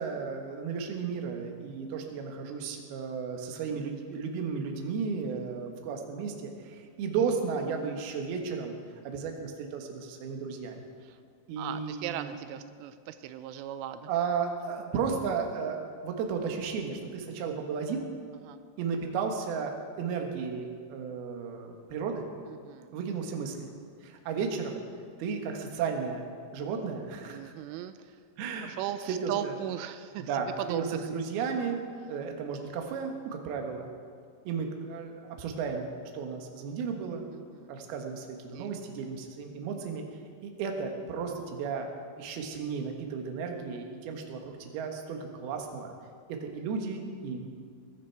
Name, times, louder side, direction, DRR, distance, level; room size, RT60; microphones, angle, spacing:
voice 1, 0.0-8.7 9.0-10.8 11.5-12.4 14.1-18.1 18.8-22.2 22.9-23.7 24.0-24.8 25.2-26.3 26.5-27.5 28.4-28.7 29.1-29.5 30.2-33.9 34.4-35.9 36.1-37.3 37.7-40.0 40.4-41.9 42.2-45.9 46.3-47.5, right 5 dB, 65° right, 3 dB, 3.0 m, -34 dB
voice 2, 11.6-14.1 18.5-18.6 22.5-22.9 27.3-28.2 28.6-31.1 37.3-37.7 38.5-38.7, right 11 dB, 85° right, 11 dB, 3.1 m, -38 dB
21.0 x 12.5 x 4.6 m, 2.1 s
omnidirectional pair, 5.5 m